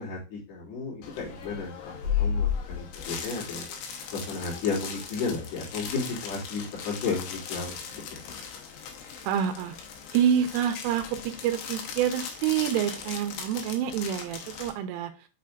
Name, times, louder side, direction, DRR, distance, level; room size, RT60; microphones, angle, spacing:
voice 1, 0.0-1.7 2.2-3.7 4.1-8.2, left 4 dB, 55° left, -6 dB, 3.9 m, -33 dB
sound 1, 1.0-14.7, left 7 dB, 75° left, 2.6 m, -36 dB
voice 2, 9.2-9.8 10.1-15.1, right 9 dB, 85° right, 8 dB, 3.1 m, -27 dB
8.5 x 4.9 x 2.5 m, 0.33 s
omnidirectional pair, 5.8 m